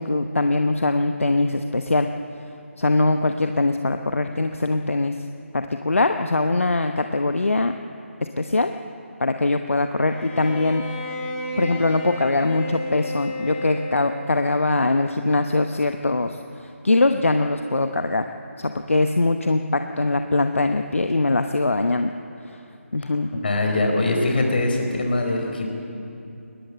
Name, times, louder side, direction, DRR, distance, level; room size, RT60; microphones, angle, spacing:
voice 1, 0.0-2.1 2.8-5.1 5.5-7.7 8.4-8.7 9.2-10.8 11.6-18.3 18.6-22.1 22.9-23.3, left 2 dB, 65° left, 7 dB, 1.0 m, -22 dB
Bowed string instrument, 10.1-14.5, left 1 dB, 15° left, 2.5 m, -33 dB
voice 2, 23.3-25.7, left 2 dB, 45° left, 2 dB, 4.6 m, -22 dB
21.5 x 20.5 x 7.6 m, 2.7 s
figure-of-eight pair, 155°, 7 cm